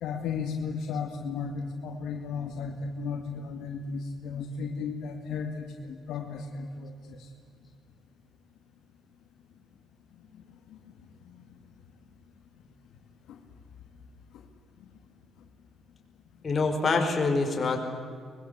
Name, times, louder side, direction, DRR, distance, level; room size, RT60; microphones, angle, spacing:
voice 1, 0.0-7.3 10.3-10.8 11.3-11.4 13.3-13.4 14.3-14.5, left 5 dB, 85° left, 3 dB, 2.2 m, -35 dB
voice 2, 16.4-17.8, left 3 dB, 40° left, 3 dB, 4.8 m, -25 dB
24.0 x 22.0 x 8.2 m, 2.1 s
cardioid pair, 90°, 0 cm